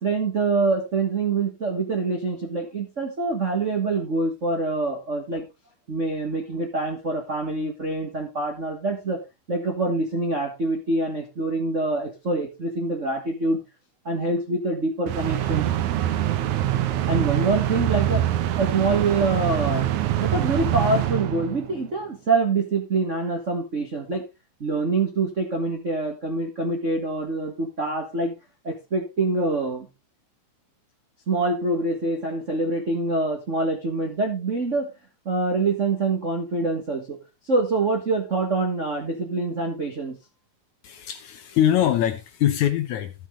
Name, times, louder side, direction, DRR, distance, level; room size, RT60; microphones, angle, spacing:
voice 1, 0.0-5.5 5.9-9.2 9.5-13.6 14.0-15.7 17.1-18.2 18.6-19.9 20.2-24.2 24.6-28.3 28.6-29.9 31.3-34.9 35.2-37.2 37.4-40.2, right 3 dB, 50° right, 0.8 m, -25 dB
sound 1, 15.1-21.9, right 12 dB, 70° right, 2.0 m, -24 dB
voice 2, 40.8-43.1, left 11 dB, 75° left, 1.8 m, -23 dB
13.0 x 7.5 x 3.7 m
omnidirectional pair, 4.0 m